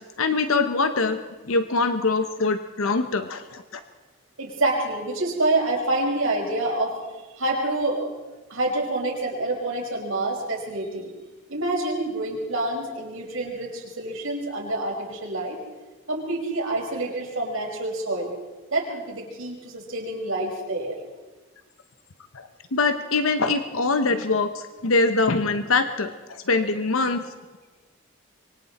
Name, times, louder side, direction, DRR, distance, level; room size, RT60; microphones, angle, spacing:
voice 1, 0.2-1.2 1.5-3.6 22.3-27.2, left 3 dB, 85° left, 8 dB, 1.0 m, -23 dB
voice 2, 4.4-6.9 7.3-8.1 8.5-11.1 11.5-15.6 16.1-18.3 18.7-21.0, right 2 dB, 85° right, -1 dB, 5.5 m, -27 dB
26.5 x 23.5 x 4.3 m, 1.2 s
head